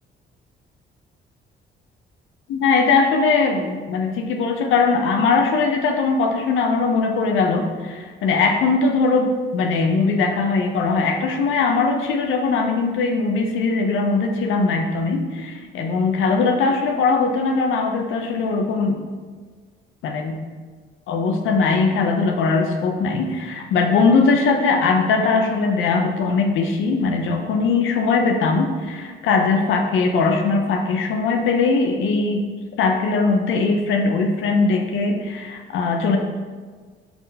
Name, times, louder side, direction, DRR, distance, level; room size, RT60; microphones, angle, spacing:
voice 1, 2.5-19.0 20.0-20.3 21.1-32.4 32.8-36.2, left 4 dB, 80° left, 3 dB, 0.8 m, -20 dB
5.8 x 4.4 x 4.0 m, 1.5 s
cardioid pair, 90°, 20 cm